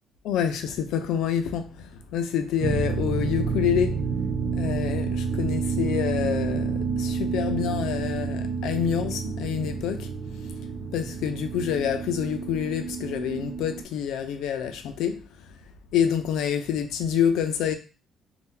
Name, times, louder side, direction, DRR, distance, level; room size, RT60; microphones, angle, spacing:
voice 1, 0.3-4.1 4.5-10.2 10.4-15.6 15.9-17.7, left 8 dB, 75° left, 0.5 m, -27 dB
sound 1, 2.6-13.8, right 5 dB, 85° right, 0.5 m, -29 dB
2.7 x 2.3 x 3.7 m
cardioid pair, 160°, 0 cm